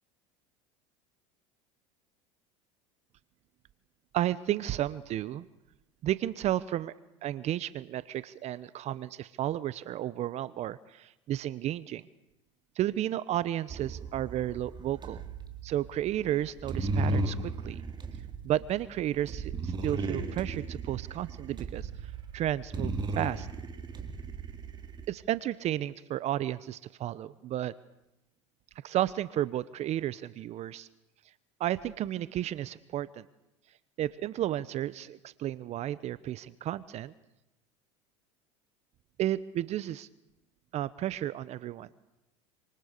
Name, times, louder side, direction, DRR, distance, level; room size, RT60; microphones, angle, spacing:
voice 1, 4.1-5.5 6.0-6.9 7.2-12.0 12.8-15.2 15.6-17.8 18.4-23.5 25.1-27.7 28.8-30.9 31.6-33.2 34.0-37.1 39.2-40.1 40.7-41.9, right 12 dB, 45° right, 17 dB, 1.0 m, -32 dB
sound 1, 13.7-25.1, right 3 dB, 30° right, 3.8 m, -35 dB
28.0 x 27.0 x 6.8 m, 0.93 s
hypercardioid pair, 95°, 15 cm